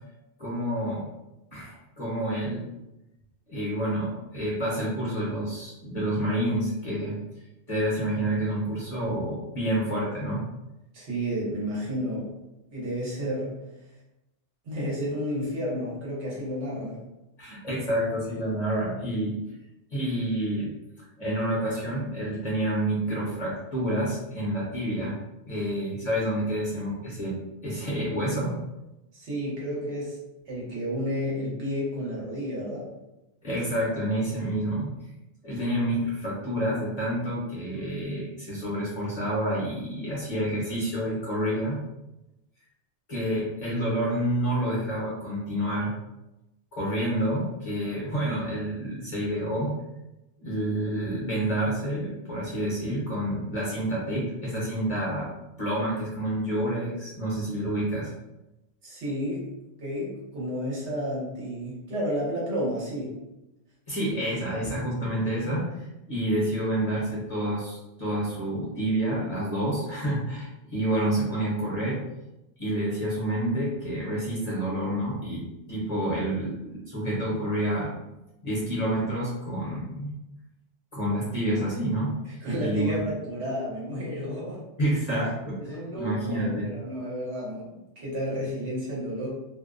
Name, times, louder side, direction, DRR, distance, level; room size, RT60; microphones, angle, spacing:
voice 1, 0.4-1.1 1.5-2.7 3.5-7.2 7.7-10.4 17.4-19.3 19.9-20.7 21.2-25.2 25.5-27.4 27.6-28.6 33.4-34.9 35.4-41.8 43.1-45.9 46.7-49.7 50.4-55.3 55.6-58.1 63.9-72.0 72.6-77.9 78.4-80.1 80.9-83.0 84.8-86.8, right 1 dB, 40° left, -6 dB, 0.7 m, -28 dB
voice 2, 10.9-12.3 12.7-13.5 14.6-17.0 29.1-30.2 30.5-32.9 58.8-59.5 59.8-63.2 82.4-84.6 85.6-89.3, equal, 70° right, -6 dB, 1.2 m, -31 dB
2.5 x 2.0 x 2.4 m, 0.96 s
omnidirectional pair, 1.2 m